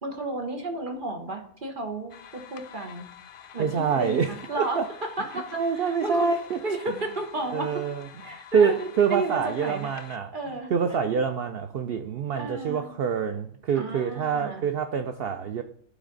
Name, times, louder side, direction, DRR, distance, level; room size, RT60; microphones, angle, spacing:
voice 1, 0.0-3.1 3.5-6.3 6.6-7.8 8.2-9.9 10.3-10.7 12.3-12.9 13.7-14.7, right 2 dB, 40° right, 3 dB, 1.0 m, -33 dB
sound 1, 2.1-10.2, left 9 dB, 70° left, 0.5 m, -47 dB
voice 2, 3.6-4.8 5.5-6.6 7.5-8.1 8.5-10.4 10.7-15.6, right 6 dB, 80° right, 7 dB, 0.5 m, -26 dB
12.0 x 4.1 x 3.8 m, 0.62 s
omnidirectional pair, 1.5 m